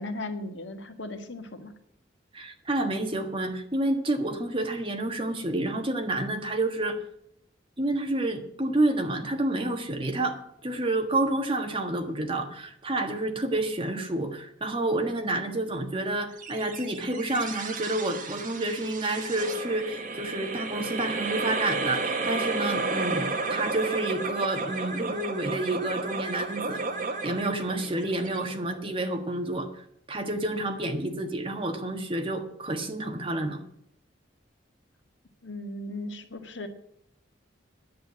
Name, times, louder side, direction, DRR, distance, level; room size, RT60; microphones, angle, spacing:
voice 1, 0.0-1.7 35.4-36.7, left 2 dB, 75° left, 6 dB, 1.6 m, -37 dB
voice 2, 2.3-7.0 7.8-26.8 27.2-29.7 30.1-33.6, right 2 dB, 25° right, 4 dB, 1.5 m, -29 dB
sound 1, 16.4-29.0, right 3 dB, 45° right, 1.5 m, -33 dB
10.5 x 8.2 x 9.5 m, 0.71 s
head